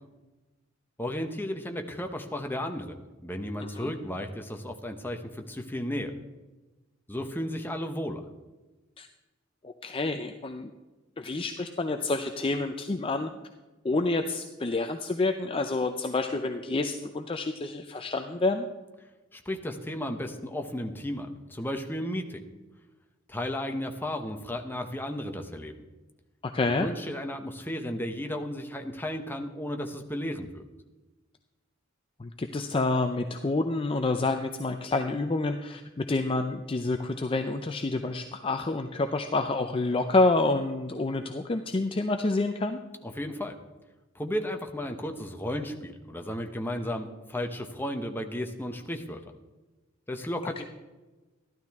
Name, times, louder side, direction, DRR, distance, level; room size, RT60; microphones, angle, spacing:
voice 1, 1.0-6.1 7.1-8.2 19.3-22.4 23.3-25.7 26.8-30.6 43.0-43.6 44.1-49.2 50.1-50.6, left 1 dB, 10° left, 4 dB, 0.9 m, -34 dB
voice 2, 9.6-10.7 11.2-13.3 13.8-18.7 26.4-26.9 32.2-42.8 50.4-50.6, left 2 dB, 30° left, 6 dB, 0.5 m, -28 dB
13.0 x 12.0 x 3.5 m, 1.2 s
head